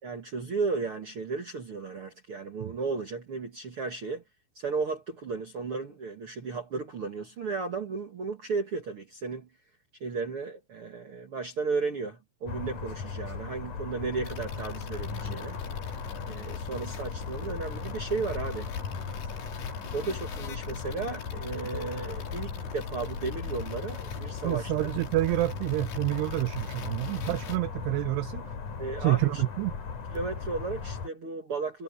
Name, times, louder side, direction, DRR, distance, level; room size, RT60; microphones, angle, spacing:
voice 1, 0.0-4.2 4.5-9.5 10.0-15.6 16.3-18.7 19.9-24.7 28.8-29.4 30.1-31.8, right 4 dB, 55° right, 1.5 m, -34 dB
sound 1, 12.5-31.1, left 5 dB, 50° left, 4.0 m, -37 dB
sound 2, 14.2-27.6, left 6 dB, 75° left, 5.9 m, -45 dB
voice 2, 24.4-28.4 29.0-29.8, right 20 dB, 90° right, 2.3 m, -28 dB
omnidirectional pair, 5.3 m